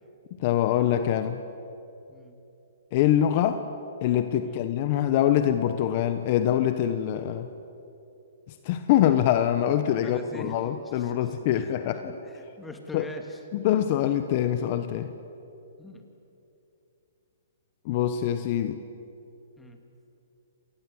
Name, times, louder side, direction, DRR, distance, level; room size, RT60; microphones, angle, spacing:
voice 1, 0.4-1.4 2.9-3.6 4.0-7.5 8.6-12.1 12.9-13.1 13.5-15.1 17.8-18.8, left 11 dB, 40° left, 10 dB, 1.1 m, -24 dB
voice 2, 9.9-10.6 11.0-11.7 12.2-13.4 15.8-16.0 19.6-19.8, left 2 dB, 5° left, 4 dB, 2.4 m, -43 dB
26.5 x 19.5 x 8.1 m, 2.8 s
hypercardioid pair, 140°, 0 cm